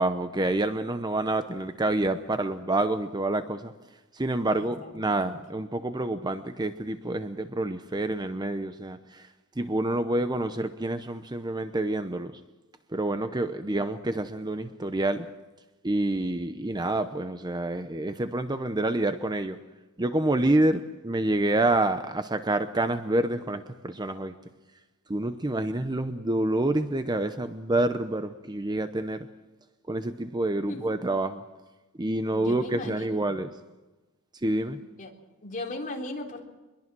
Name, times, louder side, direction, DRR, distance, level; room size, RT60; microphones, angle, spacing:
voice 1, 0.0-3.7 4.1-9.3 9.6-12.4 12.9-15.3 15.8-19.6 20.0-24.3 25.1-29.3 29.9-31.4 32.0-33.5 34.4-34.8, right 2 dB, 20° right, 10 dB, 0.8 m, -27 dB
voice 2, 4.5-5.3 13.7-13.8 20.6-20.8 30.7-30.8 32.3-33.3 34.8-35.1 35.4-36.4, left 2 dB, 35° left, 1 dB, 3.7 m, -38 dB
24.0 x 22.0 x 6.2 m, 1.2 s
head